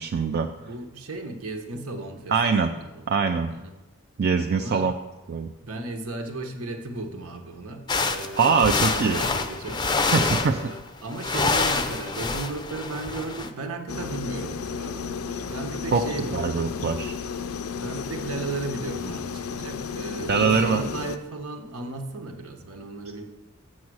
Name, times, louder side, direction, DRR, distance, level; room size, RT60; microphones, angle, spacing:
voice 1, 0.0-0.5 2.3-2.7 3.1-3.5 4.2-4.9 5.3-5.5 8.4-9.2 10.1-10.7 15.9-16.0 16.3-17.1 20.3-20.9, right 5 dB, 50° right, 5 dB, 0.4 m, -23 dB
voice 2, 0.6-3.0 3.5-3.7 4.5-4.9 5.6-16.6 17.8-23.2, right 2 dB, 85° right, 4 dB, 1.1 m, -35 dB
sound 1, 7.9-10.8 11.1-13.5, left 4 dB, 20° left, 0.5 m, -26 dB
sound 2, 13.9-21.2, left 6 dB, 85° left, 0.5 m, -33 dB
7.3 x 6.3 x 6.2 m, 1.1 s
head